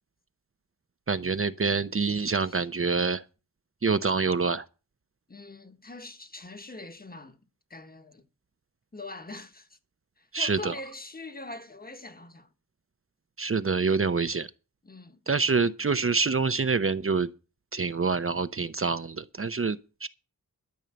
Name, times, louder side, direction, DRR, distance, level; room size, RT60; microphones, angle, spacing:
voice 1, 1.1-3.2 3.8-4.7 10.3-10.7 13.4-14.5 15.3-17.3 17.7-20.1, right 4 dB, 40° right, 0.7 m, -26 dB
voice 2, 5.3-7.4 7.7-8.2 8.9-9.8 10.2-12.5 14.8-15.2, left 2 dB, 25° left, 1.4 m, -43 dB
12.5 x 5.6 x 8.8 m
wide cardioid pair, 80°, 33 cm